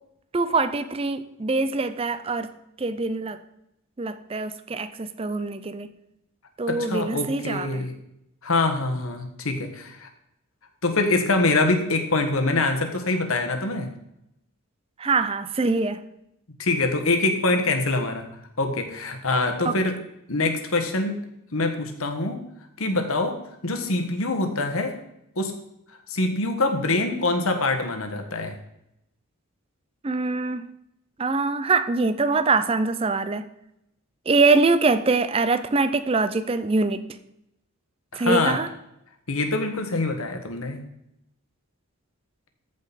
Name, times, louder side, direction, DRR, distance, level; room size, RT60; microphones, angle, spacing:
voice 1, 0.3-2.5 2.8-3.4 4.0-5.9 6.6-7.8 15.0-16.0 19.7-19.8 30.0-30.6 31.2-33.5 34.3-37.0 38.1-38.7, right 3 dB, 25° right, 12 dB, 0.5 m, -23 dB
voice 2, 6.7-7.9 8.4-10.1 10.8-13.9 16.6-18.2 18.6-20.0 20.3-21.2 21.5-22.4 22.8-25.0 25.4-25.5 26.1-28.6 38.1-38.6 39.3-40.8, left 2 dB, 75° left, 5 dB, 1.4 m, -24 dB
14.0 x 5.2 x 4.1 m, 0.82 s
head